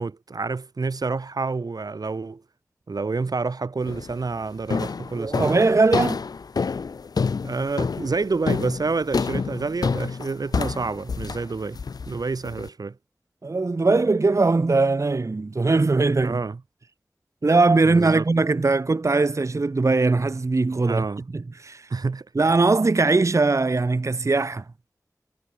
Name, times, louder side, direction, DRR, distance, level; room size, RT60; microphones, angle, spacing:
voice 1, 0.0-2.4 2.9-5.6 7.4-13.0 16.2-16.6 17.8-18.3 20.8-21.3 21.9-22.3, right 4 dB, 80° right, 0.8 m, -28 dB
sound 1, 3.9-4.2 4.7-12.7, left 5 dB, 85° left, 0.3 m, -28 dB
voice 2, 5.2-6.2 13.4-16.4 17.4-21.0 21.3-21.9 22.4-24.6, right 3 dB, 50° right, 0.6 m, -20 dB
wide cardioid pair, 45°, 6 cm